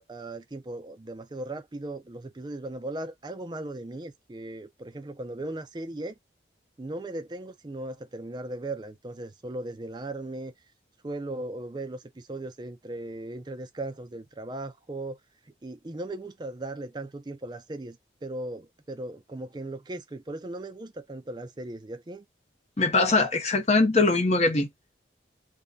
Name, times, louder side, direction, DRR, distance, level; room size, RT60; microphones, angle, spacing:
voice 1, 0.0-6.1 6.8-10.5 11.0-15.2 15.5-22.2, right 2 dB, 25° right, 0.4 m, -37 dB
voice 2, 22.8-24.7, left 3 dB, 35° left, 0.7 m, -22 dB
3.4 x 2.2 x 3.8 m
head